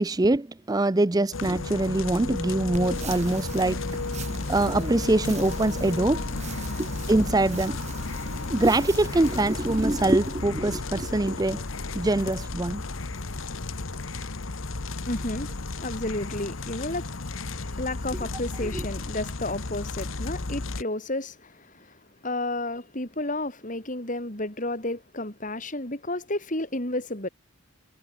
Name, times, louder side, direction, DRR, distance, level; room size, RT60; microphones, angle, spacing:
voice 1, 0.0-4.0 4.5-6.2 6.8-7.8 8.5-11.6 11.9-12.8 18.7-18.8, right 2 dB, 20° right, 0.5 m, -24 dB
sound 1, 1.3-20.8, left 3 dB, 75° left, 1.3 m, -33 dB
sound 2, 2.7-10.2, right 2 dB, 35° right, 5.2 m, -40 dB
voice 2, 15.1-27.3, left 2 dB, 40° left, 4.3 m, -32 dB
head